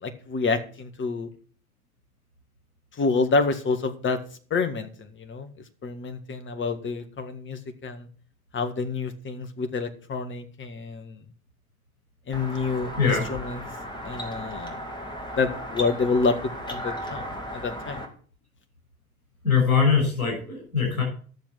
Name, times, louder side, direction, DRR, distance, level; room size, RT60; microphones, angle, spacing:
voice 1, 0.0-1.3 2.9-4.2 4.5-5.5 5.8-8.1 8.5-11.2 12.3-13.6 14.0-14.8 15.3-16.4 16.7-18.0, left 4 dB, 25° left, 8 dB, 1.7 m, -28 dB
sound 1, 12.3-18.1, equal, 10° left, 2.5 m, -36 dB
voice 2, 19.4-21.0, left 6 dB, 80° left, 0 dB, 6.2 m, -22 dB
12.0 x 6.9 x 5.9 m, 0.43 s
figure-of-eight pair, 70°, 42 cm